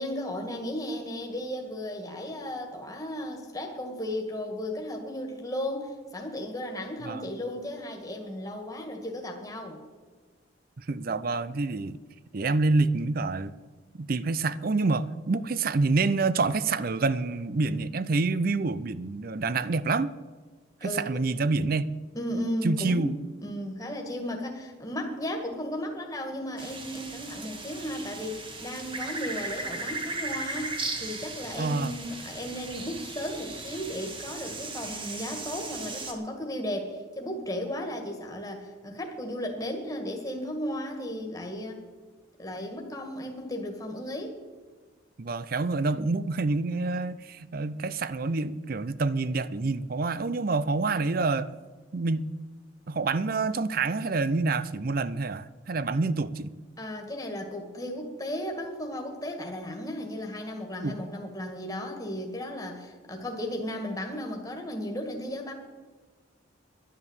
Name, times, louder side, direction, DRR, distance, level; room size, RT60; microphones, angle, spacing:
voice 1, 0.0-9.8 20.8-21.1 22.1-41.8 42.4-44.3 56.8-65.5, left 1 dB, 15° left, 1.8 m, -35 dB
voice 2, 10.8-12.0 12.3-13.5 14.0-20.1 20.8-21.9 22.6-23.2 31.6-32.0 45.2-51.5 51.9-52.3 52.9-56.5 60.8-61.0, right 3 dB, 45° right, 0.5 m, -27 dB
sound 1, 26.6-36.1, right 3 dB, 25° right, 1.5 m, -37 dB
11.0 x 10.0 x 8.1 m
head